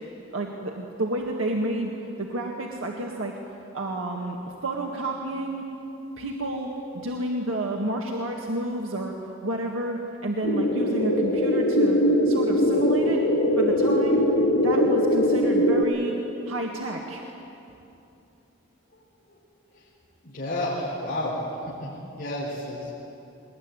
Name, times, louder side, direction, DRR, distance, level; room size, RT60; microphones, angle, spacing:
voice 1, 0.3-1.9 2.2-3.4 3.7-4.4 4.6-5.7 6.2-6.7 7.0-9.1 9.4-12.0 12.3-13.2 13.6-14.2 14.6-16.2 16.5-17.2, right 1 dB, 90° right, 0 dB, 1.8 m, -30 dB
sound 1, 10.4-15.8, equal, 85° left, 5.9 m, -21 dB
voice 2, 20.2-21.4 21.8-22.9, left 1 dB, 45° left, -7 dB, 4.4 m, -31 dB
21.0 x 20.0 x 9.8 m, 2.9 s
head